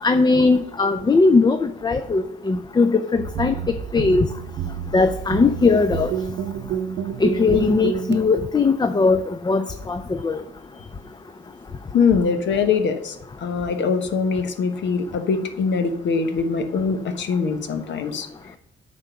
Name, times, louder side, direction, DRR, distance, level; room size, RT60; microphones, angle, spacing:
voice 1, 0.0-3.6 3.9-4.3 4.9-6.1 7.2-10.4, left 4 dB, 20° left, 9 dB, 0.5 m, -19 dB
sound 1, 3.1-8.2, right 8 dB, 65° right, 0.7 m, -29 dB
voice 2, 11.9-18.5, left 5 dB, 65° left, 8 dB, 1.0 m, -23 dB
8.8 x 3.7 x 5.8 m, 0.76 s
cardioid pair, 90°, 20 cm